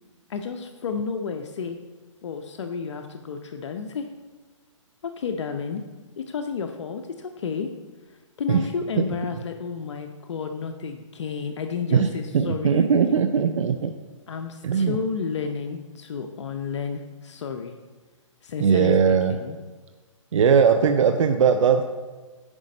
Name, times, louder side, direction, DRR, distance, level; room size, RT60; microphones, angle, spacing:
voice 1, 0.3-1.8 2.2-4.1 5.0-5.8 6.2-7.7 8.1-13.2 14.3-17.8 18.4-19.6, left 5 dB, 60° left, 6 dB, 0.7 m, -31 dB
voice 2, 12.3-13.9 14.6-15.0 18.6-19.3 20.3-21.8, right 6 dB, 70° right, 8 dB, 0.6 m, -19 dB
9.8 x 4.9 x 5.3 m, 1.3 s
hypercardioid pair, 150°, 17 cm